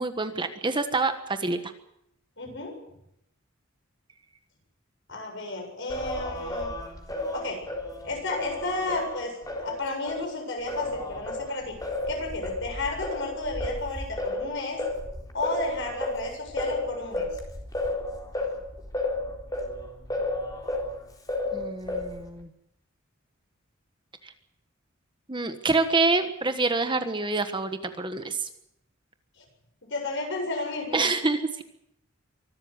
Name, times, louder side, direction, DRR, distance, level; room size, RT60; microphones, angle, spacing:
voice 1, 0.0-1.6 21.5-22.5 24.2-24.3 25.3-28.5 30.9-31.6, right 3 dB, 25° right, 8 dB, 1.4 m, -26 dB
voice 2, 2.4-2.7 5.1-6.7 7.3-7.6 8.0-11.8 12.1-14.8 15.3-17.3 29.4-29.5 29.9-31.1, left 2 dB, 60° left, 3 dB, 7.8 m, -32 dB
Singing, 5.9-10.3 10.7-20.9 21.3-22.3, left 2 dB, 20° left, 3.8 m, -32 dB
24.5 x 13.0 x 9.7 m, 0.78 s
head